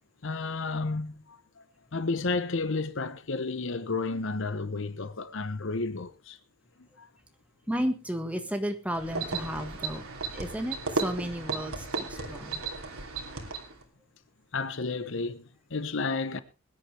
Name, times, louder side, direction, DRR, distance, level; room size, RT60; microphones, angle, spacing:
voice 1, 0.2-1.6 1.9-6.4 6.8-7.1 12.2-12.7 14.5-16.4, left 3 dB, 60° left, 0.9 m, -32 dB
voice 2, 7.7-10.1 10.3-12.6, equal, 5° right, 1.5 m, -33 dB
sound 1, 8.9-13.8, right 3 dB, 90° right, 2.9 m, -35 dB
21.5 x 9.9 x 3.3 m
head